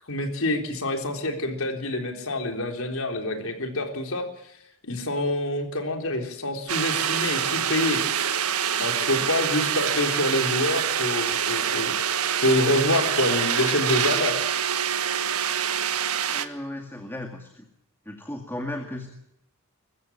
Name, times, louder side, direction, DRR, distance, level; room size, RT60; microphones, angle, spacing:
voice 1, 0.1-4.3 4.8-8.0 8.8-14.4, left 1 dB, 70° left, 4 dB, 3.7 m, -26 dB
sound 1, 6.7-16.5, right 8 dB, 85° right, 1.5 m, -25 dB
voice 2, 16.3-17.7 18.1-19.1, left 1 dB, 10° left, 4 dB, 2.1 m, -35 dB
23.0 x 15.0 x 8.5 m, 0.79 s
head